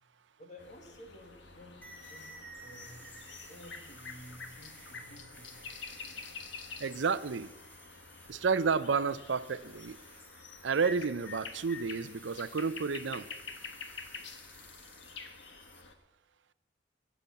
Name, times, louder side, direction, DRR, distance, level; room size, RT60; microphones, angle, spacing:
voice 1, 0.4-3.1 3.5-5.6 5.9-6.0, equal, 40° left, 4 dB, 2.0 m, -53 dB
sound 1, 0.6-15.9, left 4 dB, 75° left, 1.4 m, -48 dB
sound 2, 1.8-15.8, equal, 10° left, 1.8 m, -55 dB
voice 2, 6.8-7.5 8.3-10.0 10.6-13.3, right 5 dB, 80° right, 15 dB, 0.6 m, -31 dB
16.0 x 7.1 x 7.2 m, 0.97 s
head